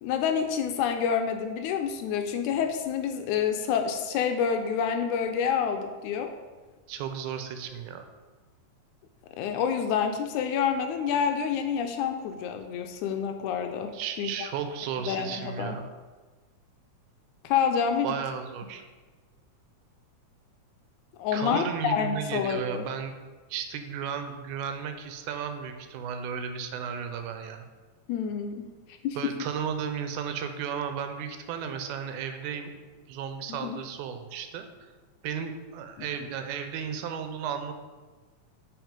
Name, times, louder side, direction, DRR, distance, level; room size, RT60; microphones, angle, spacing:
voice 1, 0.0-6.3 9.4-13.9 14.2-14.5 15.1-15.8 17.4-18.2 21.2-22.9 28.1-28.7 29.0-29.2 33.5-33.8, left 7 dB, 85° left, 6 dB, 1.9 m, -28 dB
voice 2, 6.9-8.1 13.9-15.9 18.0-18.8 21.3-23.1 23.5-27.7 29.2-32.7 33.1-34.9 35.2-37.7, right 7 dB, 85° right, 7 dB, 2.1 m, -34 dB
6.1 x 4.9 x 5.1 m, 1.3 s
omnidirectional pair, 3.5 m